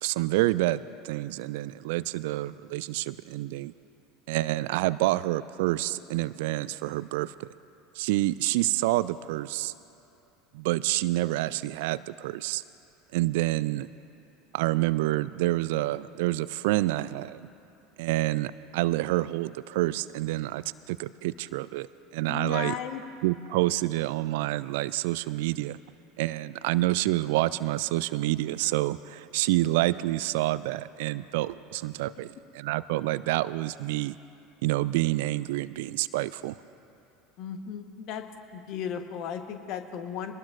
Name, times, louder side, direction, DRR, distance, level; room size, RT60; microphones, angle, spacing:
voice 1, 0.0-3.7 4.3-7.5 8.0-9.7 10.5-12.6 13.1-13.9 14.5-17.5 18.0-22.8 23.2-25.8 26.2-34.2 34.6-36.6, right 17 dB, 60° right, 17 dB, 0.3 m, -28 dB
voice 2, 22.3-23.0 37.4-38.2 38.5-40.3, left 8 dB, 50° left, 7 dB, 1.1 m, -35 dB
23.5 x 19.0 x 2.5 m, 2.7 s
figure-of-eight pair, 70°, 0 cm